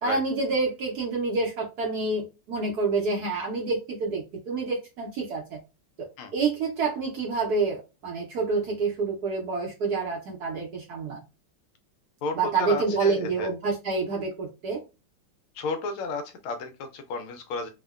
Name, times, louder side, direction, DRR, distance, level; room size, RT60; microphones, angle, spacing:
voice 1, 0.0-5.6 6.0-11.2 12.3-14.8, right 4 dB, 70° right, -2 dB, 0.9 m, -28 dB
voice 2, 12.2-13.5 15.5-17.7, left 4 dB, 80° left, 6 dB, 1.4 m, -32 dB
3.6 x 2.1 x 2.3 m, 0.27 s
omnidirectional pair, 2.4 m